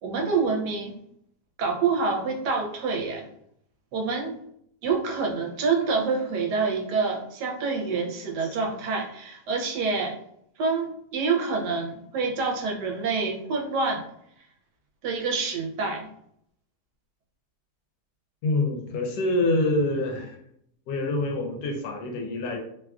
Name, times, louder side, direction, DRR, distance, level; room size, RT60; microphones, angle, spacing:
voice 1, 0.0-0.9 1.6-3.3 3.9-4.3 4.8-10.1 10.6-14.0 15.0-16.1, right 4 dB, 90° right, 1 dB, 1.2 m, -27 dB
voice 2, 18.4-20.4 20.9-22.6, left 2 dB, 85° left, 2 dB, 1.2 m, -26 dB
3.1 x 2.3 x 2.3 m, 0.70 s
omnidirectional pair, 1.7 m